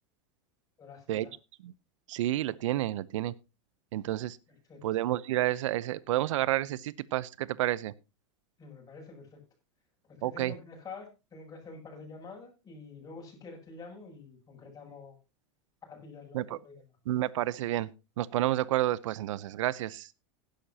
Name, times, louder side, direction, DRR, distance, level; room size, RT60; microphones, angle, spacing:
voice 1, 0.8-1.3 4.5-4.9 8.6-9.4 10.0-15.2 15.8-16.8, left 4 dB, 20° left, 0 dB, 7.5 m, -47 dB
voice 2, 2.1-3.3 3.9-4.4 4.8-7.9 10.2-10.5 16.3-16.6 17.1-17.9 18.2-20.1, right 14 dB, 80° right, 20 dB, 0.7 m, -30 dB
16.5 x 11.5 x 2.8 m, 0.27 s
supercardioid pair, 125°, 16 cm